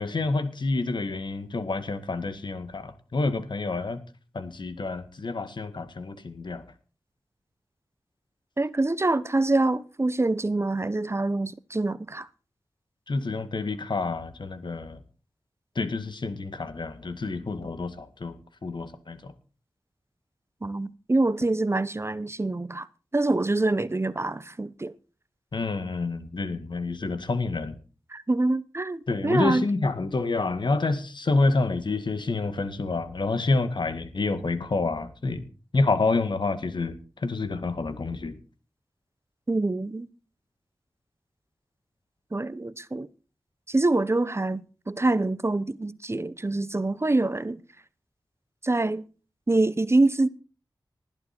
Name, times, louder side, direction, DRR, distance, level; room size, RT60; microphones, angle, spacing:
voice 1, 0.0-4.0 4.3-6.6 13.1-15.0 15.8-18.4 18.6-19.2 25.5-27.8 29.1-35.4 35.7-37.0 37.2-38.3, left 3 dB, 65° left, 2.1 m, -28 dB
voice 2, 8.6-12.3 20.6-22.9 23.1-24.9 28.1-29.7 39.5-40.1 42.3-43.1 43.7-47.6 48.6-49.0 49.5-50.3, right 2 dB, 30° right, 0.9 m, -25 dB
20.0 x 12.0 x 4.5 m
cardioid pair, 50°, 8 cm